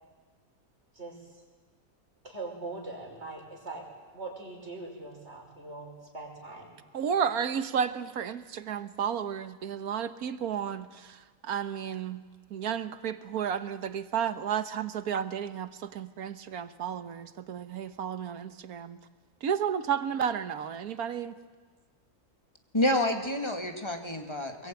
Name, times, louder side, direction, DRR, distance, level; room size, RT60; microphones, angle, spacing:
voice 1, 0.9-1.4 2.2-3.8 4.1-6.7, right 3 dB, 45° right, 0 dB, 5.8 m, -41 dB
voice 2, 6.9-12.2 12.5-19.0 19.4-21.3, right 8 dB, 85° right, 12 dB, 1.6 m, -32 dB
voice 3, 22.7-24.7, left 1 dB, 20° left, 4 dB, 2.2 m, -28 dB
24.5 x 22.0 x 9.3 m, 1.4 s
omnidirectional pair, 1.5 m